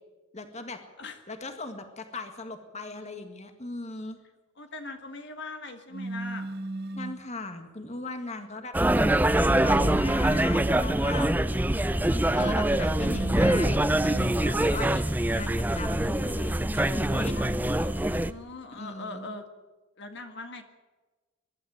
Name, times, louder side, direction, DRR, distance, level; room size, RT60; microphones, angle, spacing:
voice 1, 0.3-0.8 1.3-4.2 6.9-11.3 12.3-15.0 15.3-17.3 18.7-19.3, left 2 dB, 30° left, 6 dB, 1.9 m, -38 dB
voice 2, 4.6-6.5 17.3-19.5 20.0-20.6, left 3 dB, 55° left, 6 dB, 1.8 m, -41 dB
sound 1, 5.9-7.3 9.4-10.8 12.9-14.5 16.9-17.6, right 2 dB, 50° right, 1.4 m, -36 dB
sound 2, 8.7-18.3, right 1 dB, 10° right, 0.5 m, -24 dB
23.0 x 12.0 x 9.4 m, 1.2 s
head